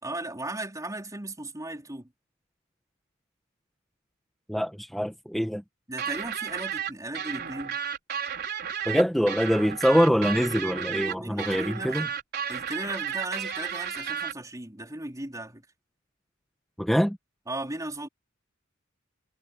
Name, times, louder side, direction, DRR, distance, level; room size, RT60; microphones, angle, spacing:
voice 1, 0.0-2.1 5.9-7.8 11.0-12.0 12.5-15.7 17.5-18.1, right 1 dB, 15° right, 4.0 m, -36 dB
voice 2, 4.5-5.6 8.8-12.1 16.8-17.2, equal, ahead, 1.5 m, -24 dB
sound 1, 6.0-14.3, right 8 dB, 50° right, 5.0 m, -33 dB
head